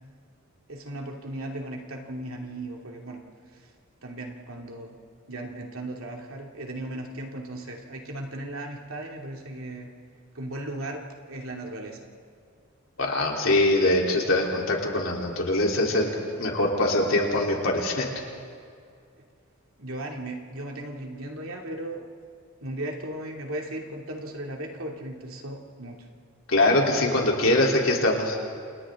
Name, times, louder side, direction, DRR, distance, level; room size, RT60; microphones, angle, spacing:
voice 1, 0.7-3.2 4.0-5.0 5.3-9.9 10.3-11.0 11.3-12.1 19.8-22.1 22.6-26.1, right 1 dB, 70° right, 0 dB, 2.7 m, -36 dB
voice 2, 13.0-18.1 26.5-28.4, left 1 dB, 65° left, -1 dB, 3.7 m, -23 dB
29.0 x 28.5 x 3.8 m, 2.3 s
head